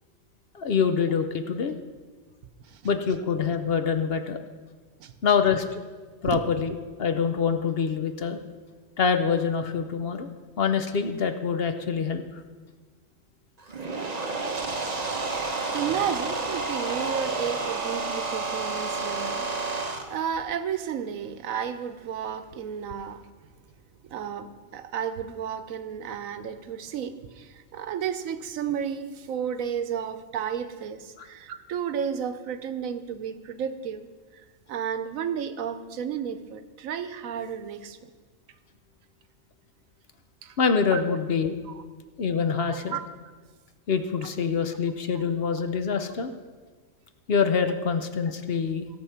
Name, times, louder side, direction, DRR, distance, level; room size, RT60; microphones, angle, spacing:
voice 1, 0.5-1.7 2.8-4.4 5.2-5.8 6.2-6.7 7.0-8.4 9.0-10.3 10.6-12.4 40.6-41.6 42.2-43.0 43.9-46.3 47.3-48.9, left 6 dB, 55° left, 8 dB, 0.8 m, -25 dB
sound 1, 13.6-20.0, right 3 dB, 35° right, 1.0 m, -30 dB
voice 2, 14.7-23.2 24.0-34.1 34.3-34.4 34.7-38.0 40.4-40.6 40.9-41.2 41.7-41.8 42.6-43.0, right 8 dB, 85° right, 10 dB, 1.2 m, -33 dB
17.0 x 6.7 x 5.7 m, 1.4 s
omnidirectional pair, 1.4 m